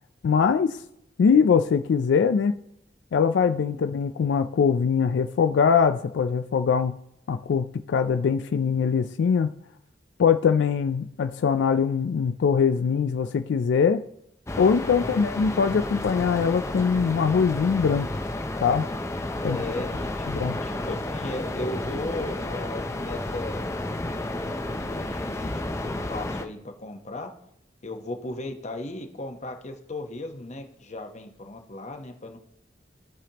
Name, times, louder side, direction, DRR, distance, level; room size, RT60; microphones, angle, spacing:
voice 1, 0.2-0.8 1.2-2.6 3.1-7.0 7.3-9.5 10.2-14.0 14.6-18.1 18.6-18.9 19.4-19.6 20.3-20.6, left 6 dB, 80° left, 9 dB, 0.3 m, -22 dB
sound 1, 14.5-26.5, left 1 dB, 15° left, 0.5 m, -31 dB
voice 2, 19.4-23.7 24.4-25.5 25.8-27.3 27.8-32.4, left 2 dB, 40° left, 5 dB, 1.0 m, -36 dB
15.5 x 5.1 x 2.9 m, 0.78 s
head